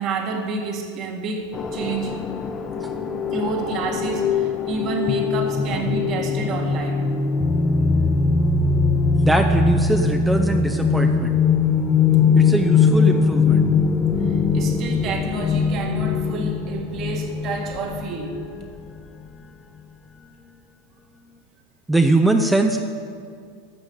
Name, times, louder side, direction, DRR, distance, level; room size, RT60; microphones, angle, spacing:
voice 1, 0.0-2.3 3.3-7.1 14.3-18.4, right 4 dB, 40° right, 3 dB, 1.8 m, -29 dB
sound 1, 1.5-18.7, left 5 dB, 25° left, 0.8 m, -21 dB
voice 2, 9.2-11.4 12.4-13.6 21.9-22.8, right 2 dB, 5° right, 5 dB, 0.6 m, -21 dB
13.0 x 6.6 x 7.8 m, 2.2 s
supercardioid pair, 120°, 0 cm